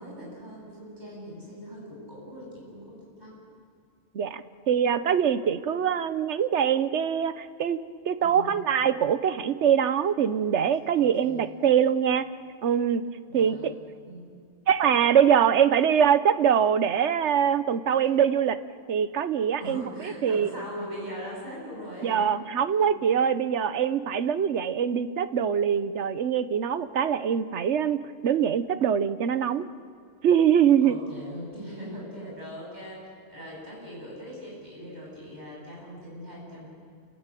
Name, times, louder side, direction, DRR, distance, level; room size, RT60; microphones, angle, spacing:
voice 1, 0.0-3.4 8.2-8.6 10.9-11.5 13.3-13.7 14.0-14.3 19.6-22.4 22.8-23.3 30.8-36.7, equal, 40° right, -4 dB, 8.2 m, -41 dB
voice 2, 4.1-7.8 8.0-12.2 12.6-13.0 13.3-13.7 14.7-18.6 18.9-19.8 20.2-20.5 22.0-29.6 30.2-31.0, right 8 dB, 75° right, 13 dB, 1.1 m, -23 dB
29.0 x 16.0 x 9.0 m, 2.3 s
omnidirectional pair, 1.2 m